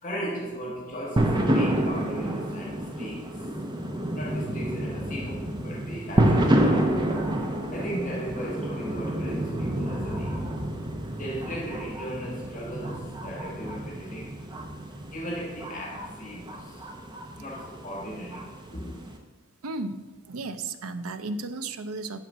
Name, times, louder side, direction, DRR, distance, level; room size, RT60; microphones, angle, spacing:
voice 1, 0.0-3.5 4.1-7.0 7.7-10.4 11.2-14.3 15.1-16.8 17.4-18.5 18.7-19.1, equal, 35° left, -3 dB, 1.4 m, -37 dB
sound 1, 1.2-19.1, right 1 dB, 20° right, 0.8 m, -29 dB
voice 2, 19.6-20.0 20.3-22.2, right 3 dB, 80° right, 11 dB, 0.6 m, -34 dB
10.5 x 4.1 x 6.1 m, 1.3 s
head